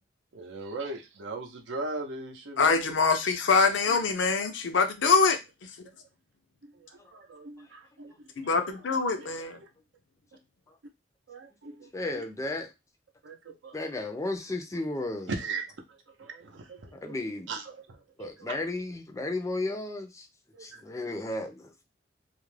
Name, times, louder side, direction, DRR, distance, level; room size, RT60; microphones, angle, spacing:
voice 1, 0.3-2.9 6.6-8.3 8.6-9.5 11.3-12.2 13.2-13.8 15.3-17.1 17.5-18.5 20.5-20.8, right 3 dB, 75° right, 0.6 m, -39 dB
voice 2, 2.6-5.4 8.4-9.6, left 4 dB, 75° left, 0.5 m, -24 dB
voice 3, 11.9-12.7 13.7-15.3 16.9-17.5 18.2-20.3 20.6-21.7, left 2 dB, 15° left, 0.4 m, -34 dB
2.4 x 2.1 x 3.1 m
head